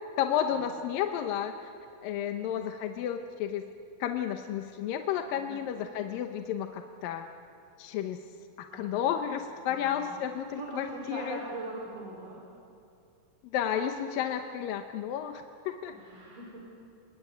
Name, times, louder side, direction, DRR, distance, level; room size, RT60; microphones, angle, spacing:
voice 1, 0.2-1.7 2.0-3.6 4.0-7.3 7.8-8.3 8.6-11.4 13.5-16.0, left 9 dB, 80° left, 6 dB, 2.6 m, -32 dB
voice 2, 5.4-5.7 8.7-9.1 9.6-10.1 10.6-12.4 15.9-16.8, right 2 dB, 65° right, -2 dB, 5.3 m, -42 dB
26.5 x 22.5 x 9.2 m, 2.6 s
omnidirectional pair, 4.0 m